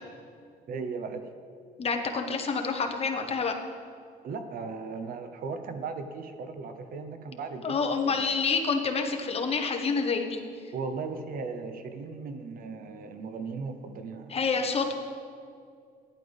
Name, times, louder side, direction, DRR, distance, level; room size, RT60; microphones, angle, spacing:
voice 1, 0.7-1.3 4.2-7.8 8.1-8.3 10.7-14.4, right 4 dB, 60° right, 8 dB, 0.9 m, -37 dB
voice 2, 1.8-3.5 7.6-10.4 14.3-14.9, left 4 dB, 35° left, 4 dB, 1.2 m, -28 dB
14.5 x 11.0 x 3.5 m, 2.2 s
cardioid pair, 110°, 17 cm